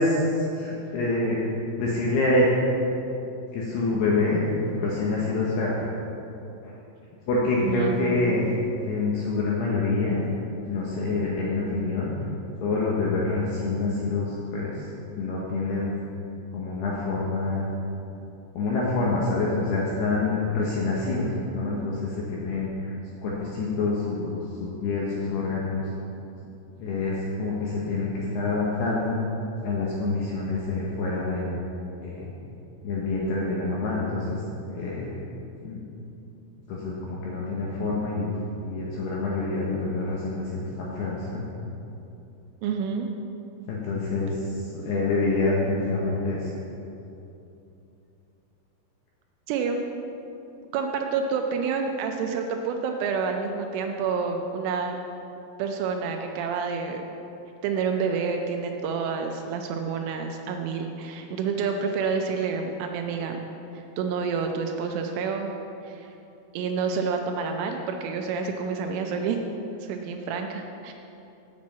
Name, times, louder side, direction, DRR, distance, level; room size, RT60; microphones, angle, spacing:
voice 1, 0.0-1.4 1.8-2.5 3.5-4.4 4.7-5.8 6.6-6.7 7.3-8.5 8.8-10.2 10.7-12.1 12.6-14.9 15.2-16.0 16.5-17.7 18.5-22.9 23.2-25.8 26.8-29.2 29.6-31.6 32.0-32.3 32.8-34.4 34.7-35.1 35.6-35.8 36.7-38.3 38.6-41.3 43.7-46.5, left 3 dB, 75° left, -5 dB, 2.5 m, -26 dB
voice 2, 7.6-8.3 42.6-43.1 49.5-49.8 50.7-55.0 55.6-57.0 57.6-63.4 63.7-65.5 65.8-66.1 66.5-69.4 69.8-70.9, right 5 dB, 80° right, 4 dB, 2.9 m, -28 dB
7.5 x 7.1 x 7.4 m, 2.8 s
omnidirectional pair, 6.0 m